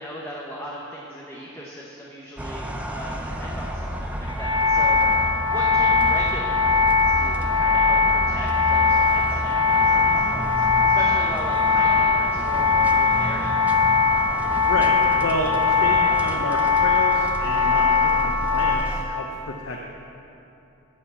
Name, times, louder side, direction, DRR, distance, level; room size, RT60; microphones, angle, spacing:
voice 1, 0.0-13.6, equal, 10° left, -4 dB, 0.9 m, -38 dB
sound 1, 2.4-19.0, equal, 5° right, 0.5 m, -31 dB
sound 2, 4.3-18.7, left 4 dB, 20° right, 1.0 m, -20 dB
voice 2, 14.6-15.5 15.8-19.8, left 2 dB, 65° left, 1 dB, 0.7 m, -30 dB
11.5 x 5.8 x 8.4 m, 2.9 s
head